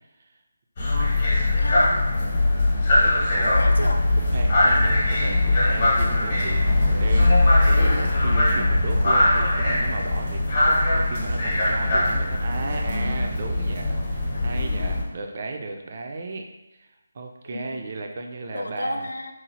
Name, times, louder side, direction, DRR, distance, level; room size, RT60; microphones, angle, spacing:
sound 1, 0.8-15.0, left 2 dB, 40° left, 0.8 m, -21 dB
voice 1, 1.4-2.1 3.6-4.1 14.3-14.5 17.4-17.9 18.5-19.3, left 1 dB, 85° left, 5 dB, 0.3 m, -32 dB
voice 2, 3.0-3.9 4.3-7.4 7.9-16.9 17.1-19.1, right 3 dB, 45° right, 3 dB, 0.3 m, -35 dB
2.9 x 2.0 x 2.7 m, 1.0 s
figure-of-eight pair, 160°, 0 cm